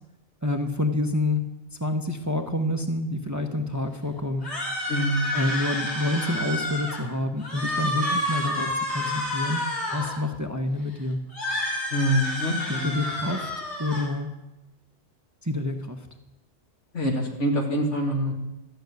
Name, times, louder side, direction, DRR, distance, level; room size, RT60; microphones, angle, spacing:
voice 1, 0.4-1.4 1.8-4.5 5.3-9.6 9.9-11.2 12.7-14.3 15.4-16.1, left 2 dB, 15° right, 6 dB, 0.7 m, -28 dB
sound 1, 4.4-7.0 7.4-10.2 11.3-14.1, left 1 dB, 65° left, 3.8 m, -29 dB
voice 2, 4.9-5.2 11.9-12.9 16.9-18.3, equal, 80° left, 1 dB, 2.5 m, -25 dB
13.0 x 6.6 x 9.4 m, 0.97 s
omnidirectional pair, 1.2 m